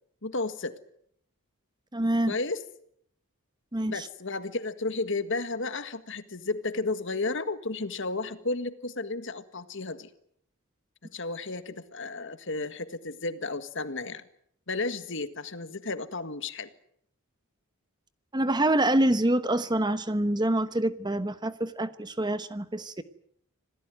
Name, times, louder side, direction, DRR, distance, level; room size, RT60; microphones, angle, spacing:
voice 1, 0.2-0.8 2.3-2.6 3.9-10.1 11.1-14.2 14.7-16.7, left 3 dB, 55° left, 11 dB, 1.7 m, -33 dB
voice 2, 1.9-2.3 3.7-4.1 18.3-23.0, right 1 dB, 20° right, 12 dB, 1.0 m, -26 dB
27.0 x 18.0 x 9.3 m, 0.69 s
head